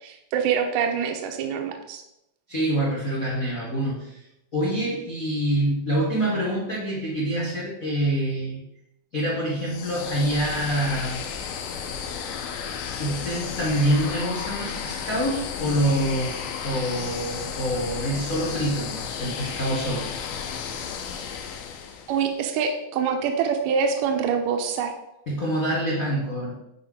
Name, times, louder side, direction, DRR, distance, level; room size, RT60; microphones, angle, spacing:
voice 1, 0.0-2.0 22.1-24.9, right 6 dB, 80° right, 4 dB, 2.1 m, -25 dB
voice 2, 2.5-4.2 4.5-8.6 9.1-11.3 13.0-20.1 25.3-26.6, right 1 dB, 70° left, -6 dB, 0.8 m, -26 dB
sound 1, 9.6-22.3, left 7 dB, 85° left, 2.6 m, -33 dB
9.0 x 4.5 x 3.7 m, 0.84 s
omnidirectional pair, 4.3 m